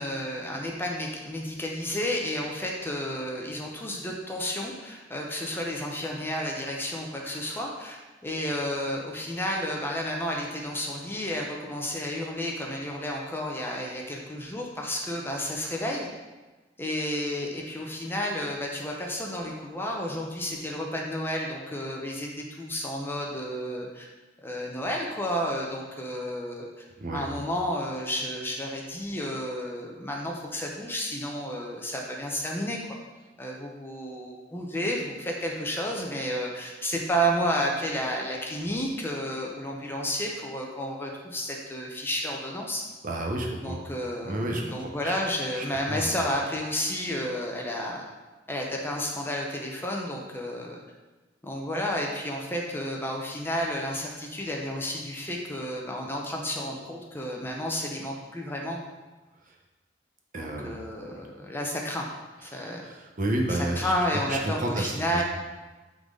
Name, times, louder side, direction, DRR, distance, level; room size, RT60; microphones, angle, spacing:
voice 1, 0.0-16.1 16.8-24.1 24.4-32.8 33.4-42.8 43.6-48.0 48.5-50.8 51.4-58.8 60.3-62.0 62.4-62.8 63.5-65.2, equal, 10° left, -1 dB, 0.7 m, -31 dB
voice 2, 43.0-43.8 44.2-45.2 45.5-46.1 60.3-60.7 61.2-61.3 62.5-65.2, right 1 dB, 45° right, 0 dB, 0.9 m, -31 dB
8.4 x 3.9 x 3.8 m, 1.2 s
head